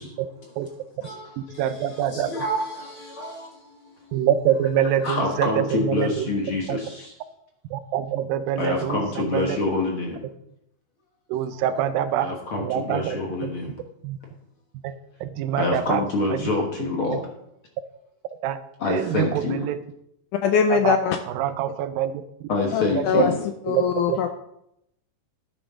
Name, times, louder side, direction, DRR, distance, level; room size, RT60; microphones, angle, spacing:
voice 1, 1.4-2.3 4.1-6.3 6.7-6.8 7.7-9.6 11.3-13.5 14.0-14.2 14.8-14.9 15.2-16.0 16.3-16.4 17.1-17.2 18.4-18.6 18.9-19.8 20.7-21.0 21.4-22.1 22.4-22.5 22.9-23.3 23.7-24.2, right 10 dB, 85° right, 12 dB, 2.4 m, -25 dB
voice 2, 5.0-6.6 8.6-10.0 12.2-12.6 12.9-13.5 15.6-17.2 18.8-19.6 22.5-23.3, left 3 dB, 50° left, 0 dB, 1.7 m, -25 dB
voice 3, 20.3-21.2 22.7-23.4 23.6-24.3, left 7 dB, 85° left, 7 dB, 1.8 m, -22 dB
12.0 x 9.0 x 3.7 m, 0.78 s
omnidirectional pair, 4.1 m